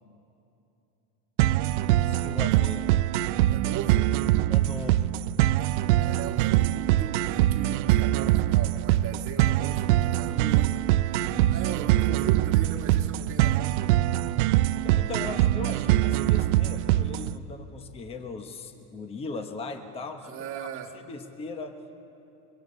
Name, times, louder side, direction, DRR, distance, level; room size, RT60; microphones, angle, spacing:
sound 1, 1.4-17.4, right 14 dB, 50° right, 0.6 m, -23 dB
voice 1, 2.0-2.9 4.5-5.2 10.3-10.7 11.2-11.6 14.8-20.7 20.9-21.8, left 3 dB, 10° left, 7 dB, 1.0 m, -39 dB
voice 2, 3.5-4.1 5.7-10.8 11.1-13.7 20.2-20.9, right 8 dB, 30° right, 4 dB, 1.6 m, -39 dB
29.5 x 23.0 x 6.6 m, 2.8 s
supercardioid pair, 170°, 46 cm